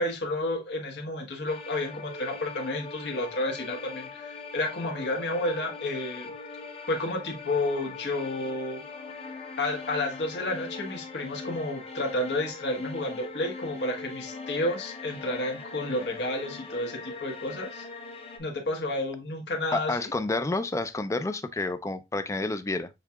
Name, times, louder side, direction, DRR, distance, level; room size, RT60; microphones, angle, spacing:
voice 1, 0.0-6.3 6.9-8.8 9.6-17.8 18.4-20.1, left 1 dB, 70° left, 1.2 m, -31 dB
sound 1, 1.5-18.4, left 4 dB, 35° left, 0.7 m, -41 dB
voice 2, 19.7-22.9, left 2 dB, 15° left, 0.4 m, -29 dB
6.6 x 2.8 x 2.3 m
head